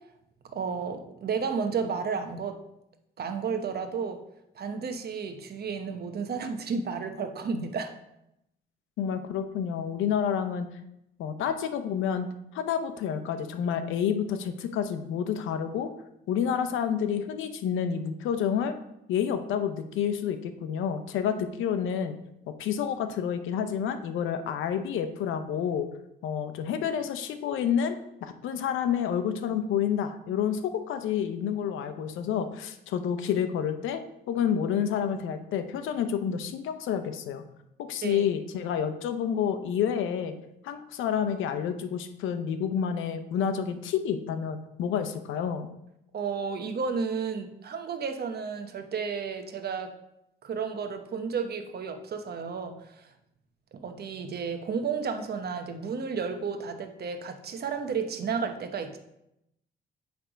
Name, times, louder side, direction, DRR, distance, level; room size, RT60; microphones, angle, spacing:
voice 1, 0.5-2.6 3.2-4.2 4.5-7.9 38.0-38.3 46.1-49.9 50.4-52.8 53.7-59.0, right 5 dB, 55° right, 6 dB, 1.0 m, -32 dB
voice 2, 9.0-10.7 11.2-12.3 12.5-15.9 16.3-18.7 19.1-22.2 22.5-25.9 26.2-27.9 28.2-34.0 34.3-37.4 37.9-40.3 40.6-45.7, left 8 dB, 85° left, 9 dB, 0.7 m, -29 dB
8.7 x 3.5 x 5.1 m, 0.83 s
cardioid pair, 90°, 20 cm